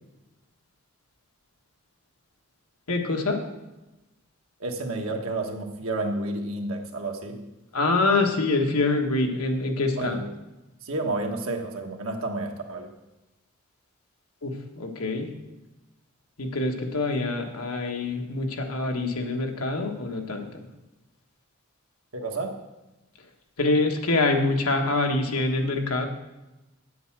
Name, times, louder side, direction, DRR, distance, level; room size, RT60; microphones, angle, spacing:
voice 1, 2.9-3.4 7.7-10.2 14.4-15.3 16.4-20.6 23.6-26.1, left 2 dB, 90° left, 2 dB, 1.4 m, -25 dB
voice 2, 4.6-7.5 10.0-10.3 10.8-12.9 22.1-22.6, right 2 dB, 75° right, 3 dB, 1.3 m, -30 dB
8.8 x 8.0 x 6.0 m, 1.0 s
head